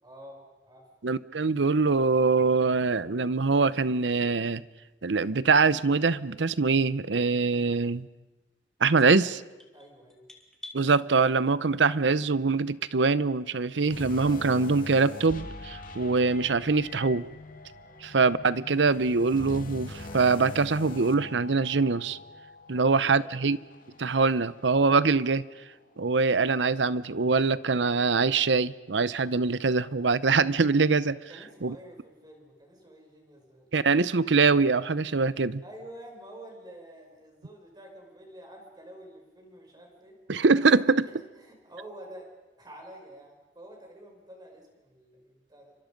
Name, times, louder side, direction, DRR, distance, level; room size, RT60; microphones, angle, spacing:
voice 1, 0.0-0.9 9.7-10.2 17.8-18.0 22.7-23.5 31.3-33.9 35.6-40.2 41.0-42.3 42.6-45.7, right 1 dB, 25° right, 6.0 m, -48 dB
voice 2, 1.0-4.6 5.0-8.1 8.8-9.4 10.7-17.3 18.0-22.2 22.7-23.6 24.0-25.4 26.0-31.2 31.6-31.7 33.7-35.6 40.3-41.1, right 4 dB, 80° right, 0.8 m, -23 dB
sound 1, 8.9-10.8, left 1 dB, 5° left, 2.9 m, -48 dB
sound 2, 13.9-25.4 25.7-25.9 26.5-26.6, left 2 dB, 50° left, 2.4 m, -43 dB
30.0 x 25.5 x 5.3 m
head